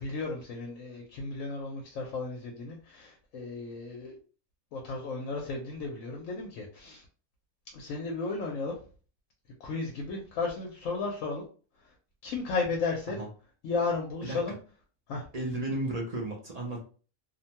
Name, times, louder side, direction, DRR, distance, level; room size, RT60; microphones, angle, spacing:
voice 1, 0.0-4.2 4.7-7.0 7.7-8.8 9.6-11.4 12.2-13.2 13.6-14.6 15.1-15.2, left 4 dB, 70° left, 0 dB, 0.9 m, -34 dB
voice 2, 14.2-14.6 15.3-16.9, right 1 dB, 55° right, -1 dB, 0.4 m, -34 dB
2.6 x 2.1 x 2.8 m, 0.39 s
omnidirectional pair, 1.5 m